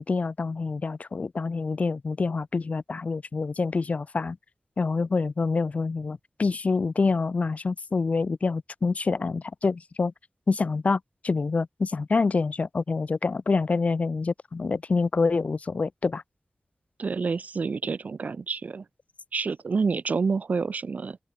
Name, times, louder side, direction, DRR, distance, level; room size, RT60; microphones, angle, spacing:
voice 1, 0.0-4.4 4.8-10.1 10.5-16.2, left 4 dB, 65° left, 0.4 m, -26 dB
voice 2, 17.0-18.8 19.3-21.2, right 4 dB, 85° right, 0.7 m, -28 dB
open air
wide cardioid pair, 75°, 3 cm